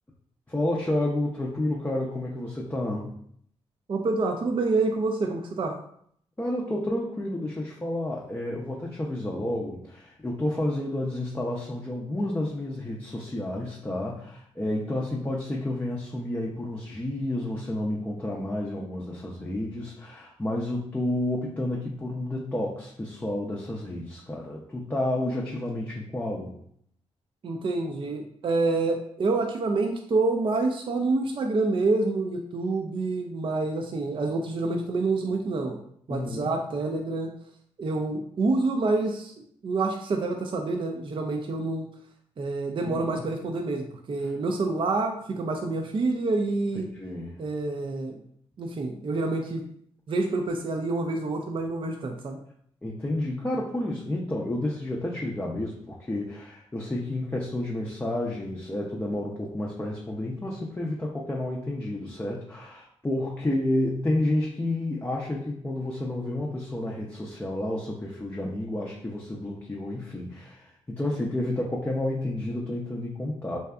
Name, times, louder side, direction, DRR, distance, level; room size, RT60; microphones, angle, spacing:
voice 1, 0.5-3.1 6.4-26.6 36.1-36.5 42.8-43.2 44.2-44.3 46.9-47.4 52.8-73.6, left 1 dB, 15° left, -3 dB, 0.5 m, -30 dB
voice 2, 3.9-5.7 27.4-35.8 36.1-37.3 37.8-41.9 42.4-46.9 47.4-48.2 48.6-49.6 50.1-52.4, right 3 dB, 40° right, 3 dB, 0.4 m, -27 dB
2.6 x 2.2 x 2.2 m, 0.65 s
supercardioid pair, 45°, 13 cm